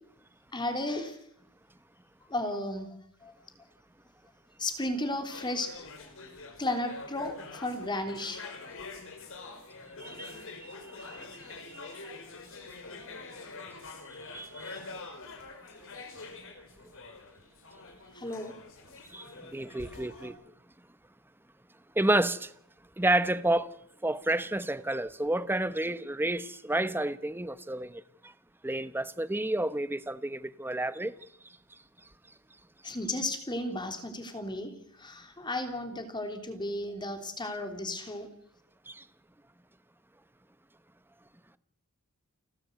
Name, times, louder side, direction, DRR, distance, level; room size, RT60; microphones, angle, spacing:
voice 1, 0.5-1.2 2.3-3.0 3.2-3.3 4.6-5.9 6.6-8.4 18.1-18.5 32.8-38.3, left 1 dB, 20° left, 3.4 m, -34 dB
sound 1, 5.3-20.3, left 3 dB, 65° left, 4.5 m, -46 dB
voice 2, 10.0-10.7 11.1-11.3 14.3-14.8 19.1-20.4 22.0-22.5 23.0-23.7 24.0-28.0 28.6-31.1 38.9-39.0, right 1 dB, 10° right, 1.0 m, -30 dB
30.0 x 12.5 x 8.1 m
head